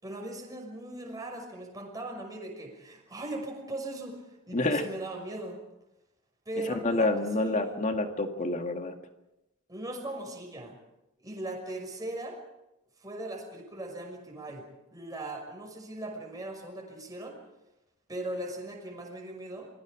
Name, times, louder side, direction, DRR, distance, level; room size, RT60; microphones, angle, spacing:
voice 1, 0.0-5.6 6.5-7.8 9.7-10.7 11.2-12.4 13.0-14.7 14.9-17.4 18.1-19.7, right 1 dB, 20° right, 1 dB, 6.0 m, -39 dB
voice 2, 4.5-4.9 6.8-8.9, left 2 dB, 35° left, 5 dB, 2.0 m, -28 dB
28.0 x 22.5 x 5.1 m, 0.93 s
head